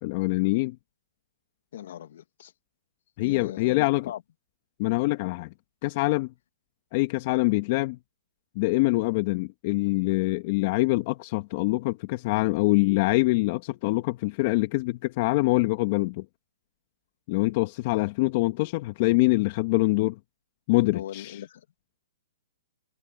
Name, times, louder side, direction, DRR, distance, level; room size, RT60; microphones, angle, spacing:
voice 1, 0.0-0.8 3.2-4.1 4.8-5.5 5.8-6.3 6.9-8.0 8.5-16.2 17.3-20.2 20.7-21.4, left 22 dB, 40° left, 1.6 m, -24 dB
voice 2, 1.7-2.5 3.2-4.2 20.9-21.6, left 11 dB, 60° left, 2.2 m, -39 dB
hypercardioid pair, 145°, 0 cm